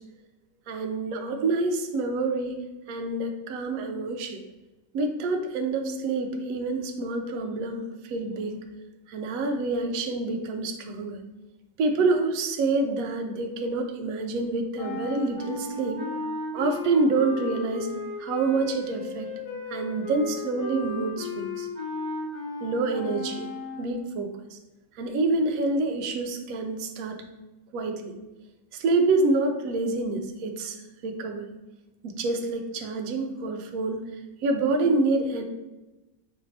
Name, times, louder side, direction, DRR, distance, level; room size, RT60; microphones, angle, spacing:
voice 1, 0.7-2.6 2.9-4.4 4.9-7.8 8.1-8.6 9.1-11.2 11.8-16.0 16.5-17.9 18.2-19.3 19.7-21.7 22.6-23.5 23.8-24.6 25.0-27.2 27.7-28.1 28.8-30.8 31.0-31.5 32.0-34.0 34.4-35.4, right 3 dB, 70° right, 5 dB, 0.8 m, -27 dB
sound 1, 14.8-23.9, left 2 dB, 80° left, 2.3 m, -35 dB
5.8 x 2.5 x 3.2 m, 1.1 s
omnidirectional pair, 1.9 m